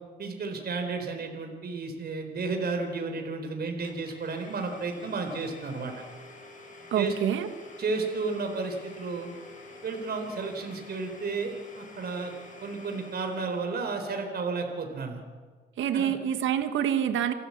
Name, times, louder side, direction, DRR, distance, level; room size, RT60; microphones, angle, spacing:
voice 1, 0.2-5.9 7.0-7.1 7.8-9.3 9.8-12.3 12.6-15.2 15.9-16.1, right 4 dB, 50° right, 4 dB, 3.9 m, -32 dB
Domestic sounds home sounds, 3.8-13.8, left 2 dB, 40° left, 7.7 m, -48 dB
voice 2, 6.9-7.5 15.8-17.3, right 9 dB, 80° right, 8 dB, 1.7 m, -26 dB
29.0 x 12.5 x 8.5 m, 1.5 s
cardioid pair, 90°, 20 cm